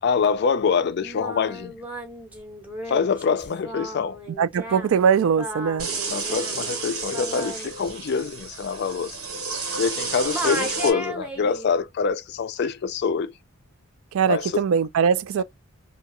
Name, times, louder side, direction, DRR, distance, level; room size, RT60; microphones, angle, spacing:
voice 1, 0.0-1.8 2.9-4.2 6.1-9.2 9.8-13.3 14.3-14.7 15.4-15.5, left 5 dB, 50° left, 0.3 m, -25 dB
Singing, 1.0-10.0 10.3-11.7, equal, 5° right, 0.6 m, -36 dB
voice 2, 4.4-5.9 14.1-15.4, right 7 dB, 70° right, 0.3 m, -21 dB
sound 1, 5.8-10.9, right 4 dB, 90° right, 1.1 m, -31 dB
2.7 x 2.2 x 2.9 m
head